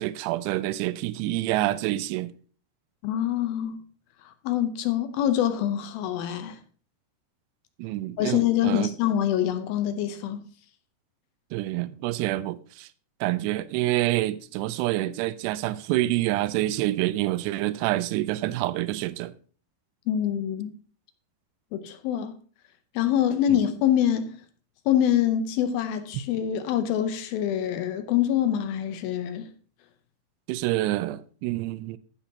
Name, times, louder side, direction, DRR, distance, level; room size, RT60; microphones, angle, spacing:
voice 1, 0.0-2.3 7.8-8.9 11.5-12.9 13.2-19.3 23.5-23.6 30.5-32.0, right 16 dB, 90° right, 2.7 m, -27 dB
voice 2, 3.0-3.8 4.3-6.6 8.2-10.4 20.1-20.8 21.7-22.4 23.0-24.4 24.9-29.5, left 10 dB, 75° left, 2.3 m, -25 dB
15.0 x 7.1 x 2.8 m
omnidirectional pair, 4.9 m